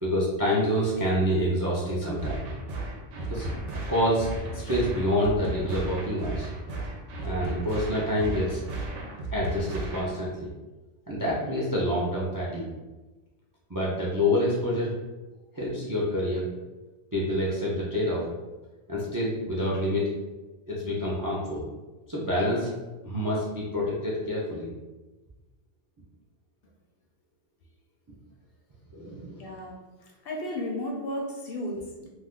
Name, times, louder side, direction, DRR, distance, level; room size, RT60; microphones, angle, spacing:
voice 1, 0.0-2.4 3.3-3.4 3.9-4.3 4.5-6.5 7.2-8.6 9.3-10.5 11.1-12.7 13.7-14.9 15.5-16.5 17.1-18.3 18.9-20.1 20.7-21.6 22.1-22.7 23.0-24.7 28.9-29.4, equal, 35° right, -5 dB, 0.3 m, -27 dB
sound 1, 2.2-10.2, right 1 dB, 85° right, 1.0 m, -34 dB
voice 2, 29.4-32.1, left 1 dB, 65° left, 0 dB, 0.7 m, -34 dB
2.5 x 2.3 x 3.5 m, 1.1 s
omnidirectional pair, 1.2 m